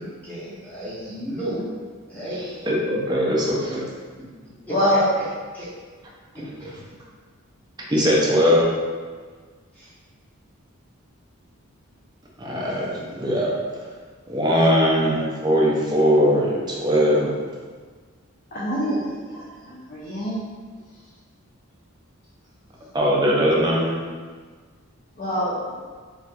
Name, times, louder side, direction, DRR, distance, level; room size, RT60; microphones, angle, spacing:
voice 1, 0.0-1.6 2.1-2.4 4.7-5.0 5.5-5.7 6.3-6.7 7.9-8.0 9.8-9.9, right 1 dB, 10° left, -10 dB, 0.8 m, -33 dB
voice 2, 2.4-3.9 7.9-8.7 12.4-13.5 14.3-17.4 22.9-23.9, equal, 20° right, -4 dB, 0.5 m, -20 dB
voice 3, 4.7-5.0 18.5-19.0 19.3-20.4 25.2-25.6, equal, 35° left, -8 dB, 0.5 m, -24 dB
4.1 x 2.4 x 2.3 m, 1.5 s
head